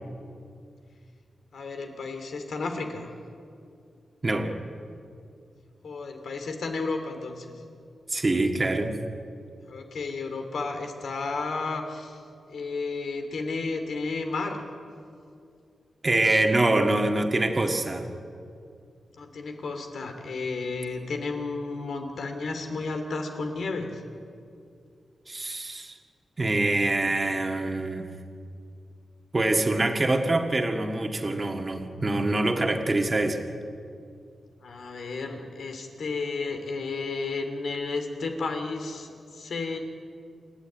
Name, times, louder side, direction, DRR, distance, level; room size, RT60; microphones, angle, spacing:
voice 1, 1.5-3.1 5.8-7.6 9.6-12.2 12.5-14.6 19.2-24.0 29.7-29.8 34.6-39.8, left 3 dB, 75° left, 5 dB, 2.8 m, -32 dB
voice 2, 8.1-9.0 16.0-18.1 25.3-25.9 26.4-28.1 29.3-33.4, right 2 dB, 25° right, 4 dB, 1.8 m, -25 dB
28.0 x 12.0 x 9.2 m, 2.4 s
wide cardioid pair, 125°, 0 cm